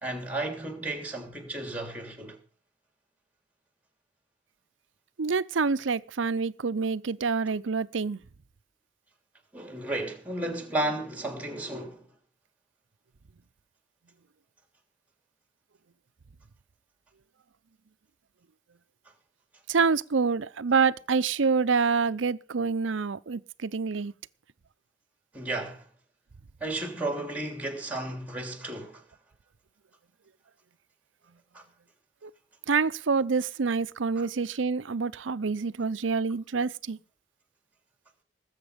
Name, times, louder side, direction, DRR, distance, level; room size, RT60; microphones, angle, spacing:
voice 1, 0.0-2.4 9.5-12.0 25.3-25.8 26.6-29.0 31.5-31.6 34.2-34.3, right 2 dB, 10° right, 3.1 m, -33 dB
voice 2, 5.2-8.2 19.7-24.1 32.2-32.3 32.7-37.0, right 5 dB, 90° right, 0.6 m, -27 dB
19.5 x 8.1 x 5.1 m
head